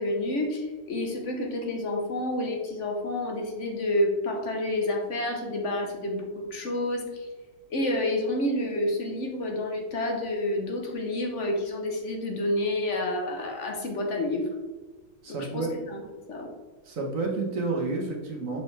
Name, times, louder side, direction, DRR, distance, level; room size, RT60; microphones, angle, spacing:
voice 1, 0.0-7.3 7.7-14.5 15.3-16.0 16.3-16.5, left 1 dB, 50° left, 1 dB, 1.1 m, -29 dB
voice 2, 15.2-15.7 16.8-18.6, right 3 dB, 50° right, 0 dB, 1.5 m, -30 dB
7.0 x 4.9 x 3.3 m, 1.3 s
omnidirectional pair, 2.0 m